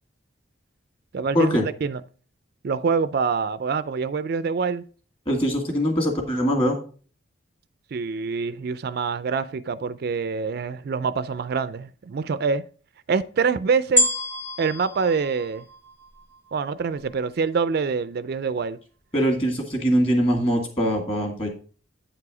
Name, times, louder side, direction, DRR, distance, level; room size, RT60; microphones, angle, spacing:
voice 1, 1.1-2.0 2.6-4.8 7.9-12.6 13.1-14.1 14.6-15.7 16.5-18.8, right 5 dB, 50° right, 0.3 m, -25 dB
voice 2, 5.3-6.8 19.1-21.5, equal, 25° left, 2.1 m, -22 dB
sound 1, 14.0-16.4 17.0-17.1, equal, 10° left, 0.9 m, -26 dB
8.8 x 4.8 x 4.8 m
head